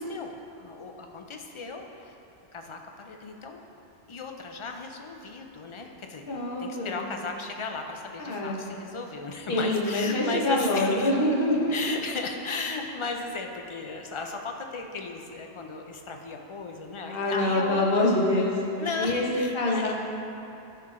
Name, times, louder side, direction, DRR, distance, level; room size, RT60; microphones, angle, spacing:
voice 1, 0.1-2.1 2.5-3.6 4.1-6.3 6.6-11.1 11.7-18.1 18.8-19.9, left 3 dB, 35° left, 3 dB, 0.5 m, -35 dB
voice 2, 6.3-7.1 8.2-8.6 9.5-11.9 17.0-18.5 18.8-19.2 19.5-19.9, left 1 dB, 60° left, -3 dB, 1.3 m, -25 dB
11.5 x 4.7 x 3.7 m, 2.9 s
omnidirectional pair, 1.1 m